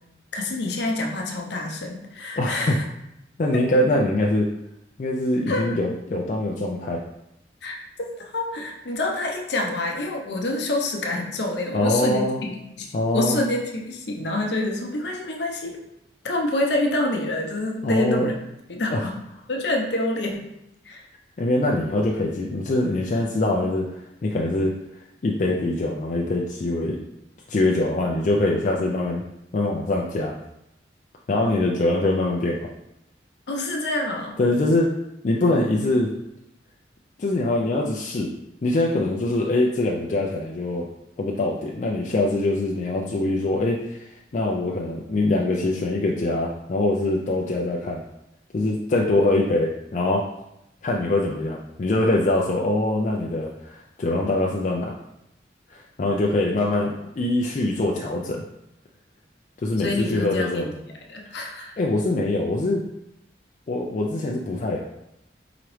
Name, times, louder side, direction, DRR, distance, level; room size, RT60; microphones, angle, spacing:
voice 1, 0.3-2.8 5.5-5.7 7.6-15.8 16.2-18.3 18.7-19.2 19.5-20.4 20.8-21.0 33.5-34.4 59.8-60.8 61.1-61.7, left 2 dB, 65° left, 0 dB, 0.7 m, -27 dB
voice 2, 2.4-2.8 3.4-4.5 5.0-7.0 11.7-12.4 12.9-13.4 17.8-18.3 18.9-19.1 21.4-24.7 25.2-27.0 27.5-29.2 29.5-30.3 31.3-32.7 34.4-34.9 35.2-36.1 37.2-38.3 38.6-40.9 41.2-44.1 44.3-48.0 48.5-50.2 50.8-54.9 55.7-58.4 59.6-60.7 61.8-62.8 63.7-64.8, left 2 dB, 40° left, -2 dB, 0.3 m, -23 dB
4.8 x 2.9 x 3.2 m, 0.85 s
head